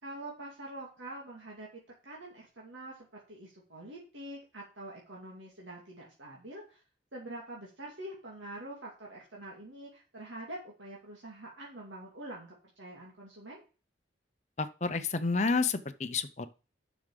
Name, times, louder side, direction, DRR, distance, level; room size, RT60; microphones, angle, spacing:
voice 1, 0.0-1.7 2.0-6.8 7.1-13.6, right 1 dB, 85° right, -3 dB, 2.5 m, -45 dB
voice 2, 14.6-16.5, left 4 dB, 35° left, 11 dB, 0.7 m, -30 dB
7.1 x 6.2 x 6.7 m, 0.35 s
head